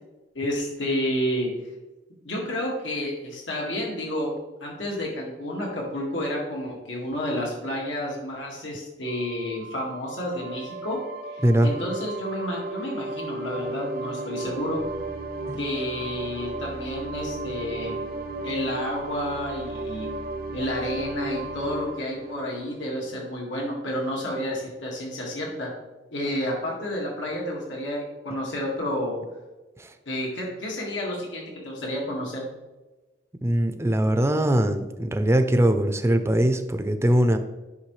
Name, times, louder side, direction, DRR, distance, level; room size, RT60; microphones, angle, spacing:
voice 1, 0.3-1.5 2.2-4.3 4.6-11.0 11.3-14.8 15.6-18.1 18.4-20.1 20.5-25.7 26.1-29.2 30.1-32.5, left 1 dB, 80° left, -2 dB, 1.9 m, -30 dB
sound 1, 9.1-23.5, right 2 dB, 55° right, 0.6 m, -35 dB
voice 2, 33.4-37.4, right 1 dB, 15° right, 8 dB, 0.5 m, -21 dB
10.5 x 5.7 x 3.2 m, 1.2 s
head